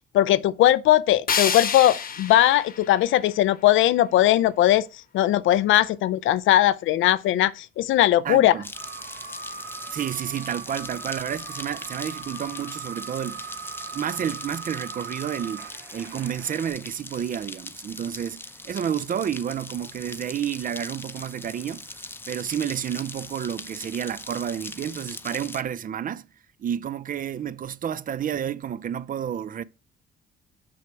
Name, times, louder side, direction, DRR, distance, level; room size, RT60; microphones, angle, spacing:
voice 1, 0.1-4.9 5.1-8.5, left 13 dB, 80° left, 0.5 m, -19 dB
sound 1, 1.3-4.2, left 7 dB, 45° left, 1.0 m, -30 dB
voice 2, 8.2-8.7 9.9-13.6 13.9-21.9 22.3-26.3 26.6-29.6, right 9 dB, 45° right, 0.5 m, -30 dB
sound 2, 8.6-25.6, left 2 dB, 10° left, 0.6 m, -41 dB
sound 3, 8.7-16.7, right 6 dB, 70° right, 2.1 m, -40 dB
6.3 x 5.8 x 4.5 m
cardioid pair, 90°, 20 cm